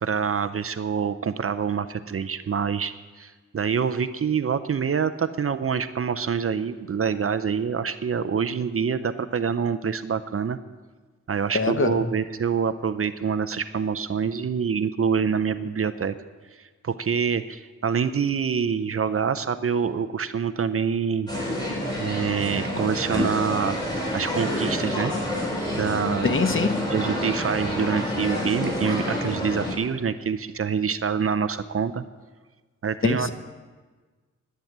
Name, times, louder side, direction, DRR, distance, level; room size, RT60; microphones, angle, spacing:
voice 1, 0.0-10.6 11.3-16.1 16.8-21.3 22.0-23.8 24.1-25.1 25.8-26.3 26.9-32.0 32.8-33.3, right 6 dB, 45° right, 11 dB, 0.5 m, -26 dB
voice 2, 11.5-12.1 26.2-26.9 33.0-33.3, left 4 dB, 40° left, 8 dB, 0.9 m, -23 dB
sound 1, 21.3-29.7, left 1 dB, 15° left, 4.1 m, -28 dB
11.0 x 10.5 x 7.3 m, 1.4 s
wide cardioid pair, 120°, 31 cm